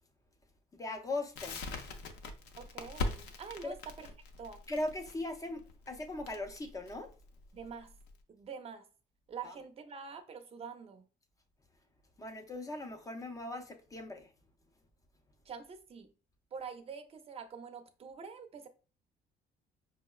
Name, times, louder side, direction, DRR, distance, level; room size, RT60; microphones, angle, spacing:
voice 1, 0.7-1.6 3.6-3.7 4.7-7.1 9.4-9.5 12.2-14.3, left 2 dB, 20° left, 0.5 m, -39 dB
Crackle, 1.4-8.2, left 3 dB, 85° left, 0.6 m, -41 dB
voice 2, 2.6-4.1 4.4-4.6 7.5-7.9 8.3-8.8 9.3-11.1 15.5-16.1 16.5-18.7, right 6 dB, 35° right, 0.5 m, -46 dB
5.1 x 2.1 x 2.3 m
cardioid pair, 110°, 17 cm